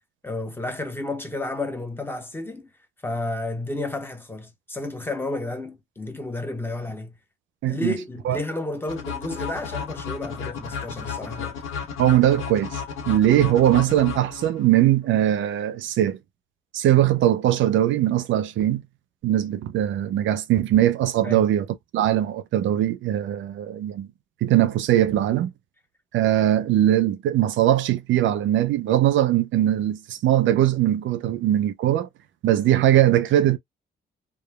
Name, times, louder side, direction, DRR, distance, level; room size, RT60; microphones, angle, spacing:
voice 1, 0.2-2.7 3.0-7.1 7.7-11.6 21.2-21.5, left 2 dB, 10° left, 0.8 m, -31 dB
voice 2, 7.6-7.9 8.3-8.4 12.0-12.8 13.1-16.2 16.7-18.8 19.2-21.7 21.9-24.1 24.4-25.5 26.1-32.1 32.4-33.6, right 12 dB, 75° right, 0.4 m, -20 dB
sound 1, 8.9-14.8, left 7 dB, 90° left, 1.0 m, -33 dB
3.0 x 2.2 x 2.2 m
cardioid pair, 90°, 20 cm